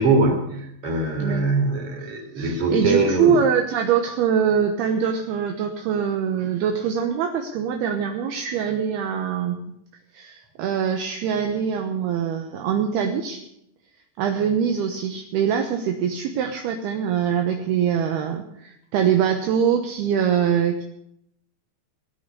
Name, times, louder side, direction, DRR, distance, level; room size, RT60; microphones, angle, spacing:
voice 1, 0.0-3.4, right 3 dB, 30° right, 3 dB, 3.8 m, -22 dB
voice 2, 2.4-9.6 10.1-13.4 14.2-20.8, right 7 dB, 70° right, 5 dB, 2.6 m, -23 dB
19.5 x 9.5 x 6.8 m, 0.79 s
omnidirectional pair, 5.7 m